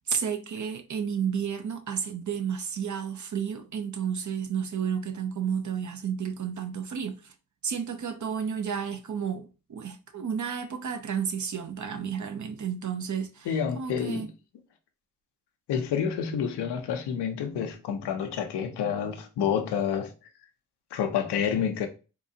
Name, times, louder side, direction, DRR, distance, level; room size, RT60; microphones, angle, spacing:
voice 1, 0.1-7.3 7.6-13.5 13.8-14.3, right 7 dB, 50° right, 0.7 m, -32 dB
voice 2, 13.5-14.3 15.7-20.1 20.9-21.9, left 7 dB, 85° left, 0.7 m, -28 dB
4.5 x 2.4 x 2.7 m
supercardioid pair, 45°, 39 cm